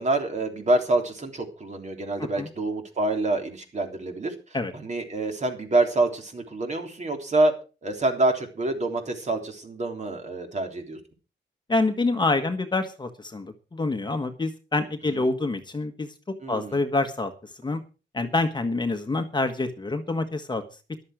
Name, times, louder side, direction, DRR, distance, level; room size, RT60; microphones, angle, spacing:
voice 1, 0.0-4.3 4.7-7.5 7.8-11.0 15.1-15.2 16.4-16.8, right 2 dB, 40° right, 4 dB, 3.4 m, -26 dB
voice 2, 11.7-16.1 16.5-17.3 17.6-17.8 18.1-20.6, left 3 dB, 25° left, 6 dB, 1.4 m, -26 dB
14.0 x 12.0 x 5.0 m, 0.34 s
wide cardioid pair, 155°, 19 cm